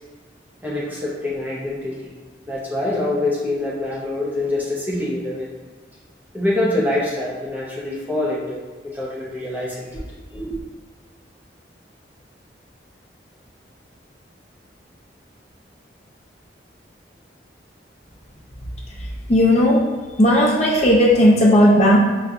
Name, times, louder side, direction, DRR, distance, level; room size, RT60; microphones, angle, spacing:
voice 1, 0.6-2.1 2.5-5.5 6.3-10.6, left 1 dB, 10° right, -6 dB, 0.5 m, -25 dB
voice 2, 19.3-19.8 20.2-22.0, equal, 35° left, -3 dB, 0.5 m, -14 dB
4.7 x 2.6 x 2.3 m, 1.4 s
head